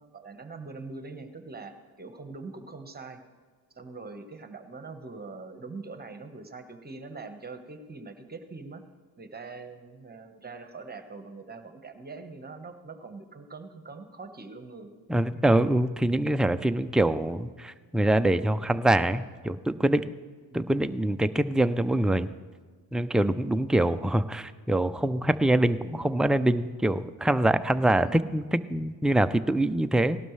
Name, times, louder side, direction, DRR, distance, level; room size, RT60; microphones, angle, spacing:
voice 1, 0.0-3.2 3.7-8.8 9.2-14.9 15.3-15.6 20.5-20.7 21.6-21.9 28.0-28.3, right 3 dB, 20° right, 7 dB, 1.2 m, -43 dB
voice 2, 15.1-20.1 20.5-22.3 22.9-30.2, right 1 dB, ahead, 9 dB, 0.3 m, -24 dB
17.5 x 12.0 x 3.2 m, 1.5 s
cardioid pair, 85°, 42 cm